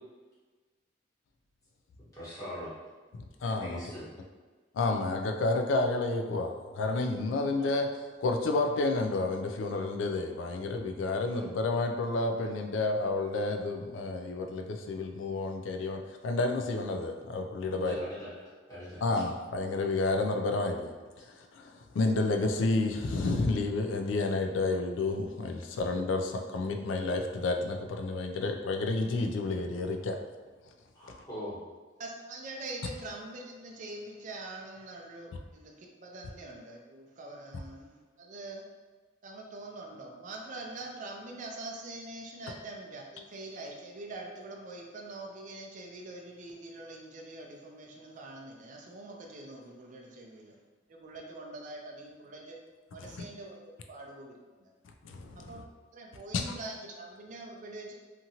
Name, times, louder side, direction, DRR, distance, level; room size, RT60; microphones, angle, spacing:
voice 1, 2.1-2.7 3.6-4.1 17.7-19.0 30.9-31.6, equal, 20° left, -11 dB, 1.2 m, -41 dB
voice 2, 3.4-3.8 4.7-18.0 19.0-20.9 21.3-30.2 53.0-53.1 55.0-55.5 56.3-56.4, left 3 dB, 85° left, 4 dB, 0.4 m, -30 dB
voice 3, 32.0-38.6 39.2-50.5 50.9-52.6 52.9-54.7 55.4-55.6 55.9-57.9, right 2 dB, 45° right, 0 dB, 0.4 m, -44 dB
2.8 x 2.5 x 2.7 m, 1.4 s
head